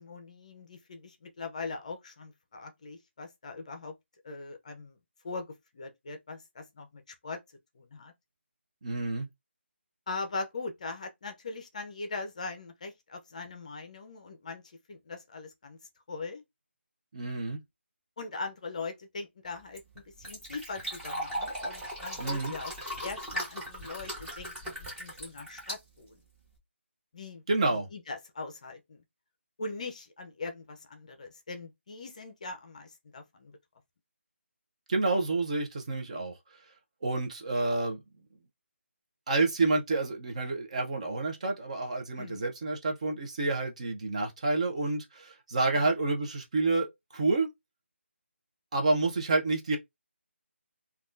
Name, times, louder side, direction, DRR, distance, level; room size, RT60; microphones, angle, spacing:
voice 1, 0.0-3.9 4.2-5.0 5.2-7.4 7.8-8.1 10.1-14.6 14.9-15.8 16.1-16.4 18.2-22.7 23.0-26.2 27.1-27.4 27.9-29.0 29.6-33.6 42.2-42.4 45.7-45.9, left 3 dB, 35° left, 0.6 m, -41 dB
voice 2, 8.8-9.3 17.1-17.6 22.2-22.5 27.5-27.9 34.9-36.3 37.0-38.0 39.3-46.9 47.1-47.5 48.7-49.8, right 3 dB, 30° right, 0.6 m, -29 dB
Fill (with liquid), 19.5-26.6, equal, 5° right, 1.1 m, -39 dB
3.4 x 2.3 x 2.5 m
figure-of-eight pair, 165°, 7 cm